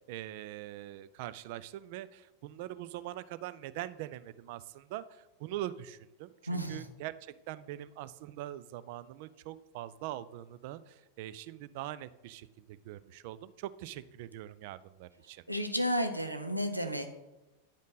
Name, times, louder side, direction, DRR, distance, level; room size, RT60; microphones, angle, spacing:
voice 1, 0.1-6.3 6.7-15.4, right 14 dB, 50° right, 16 dB, 0.3 m, -43 dB
voice 2, 6.5-6.8 15.5-17.1, equal, 90° right, 7 dB, 0.7 m, -32 dB
10.0 x 5.1 x 4.0 m, 1.0 s
figure-of-eight pair, 90°, 0 cm